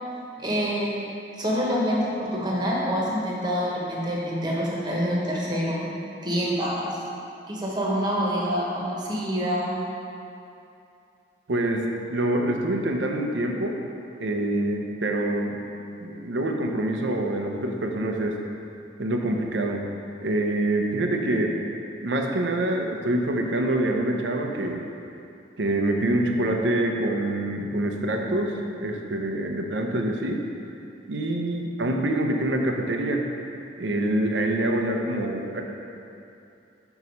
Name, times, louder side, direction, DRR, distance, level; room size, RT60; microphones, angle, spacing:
voice 1, 0.4-1.0 1.3-5.9 6.2-6.9 7.5-9.8, equal, 25° right, -5 dB, 1.1 m, -26 dB
voice 2, 11.5-13.8 14.2-15.7 16.0-18.4 19.0-19.8 20.2-21.6 22.0-24.8 25.6-30.4 31.1-33.2 33.8-35.6, right 1 dB, 85° right, 2 dB, 0.7 m, -25 dB
5.4 x 4.7 x 5.3 m, 2.6 s
head